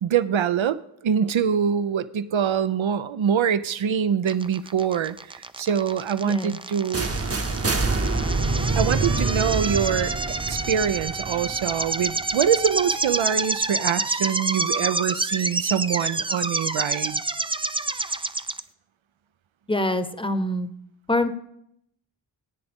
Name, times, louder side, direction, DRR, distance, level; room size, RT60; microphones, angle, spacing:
voice 1, 0.0-7.1 8.7-17.2, right 8 dB, 80° right, 14 dB, 0.6 m, -24 dB
sound 1, 4.3-18.6, right 3 dB, 15° right, 0.3 m, -28 dB
sound 2, 6.9-12.8, right 3 dB, 30° right, 0.9 m, -26 dB
voice 2, 19.7-20.7 21.1-21.3, left 1 dB, 10° left, 11 dB, 0.9 m, -24 dB
17.5 x 9.5 x 3.6 m, 0.75 s
wide cardioid pair, 50°, 46 cm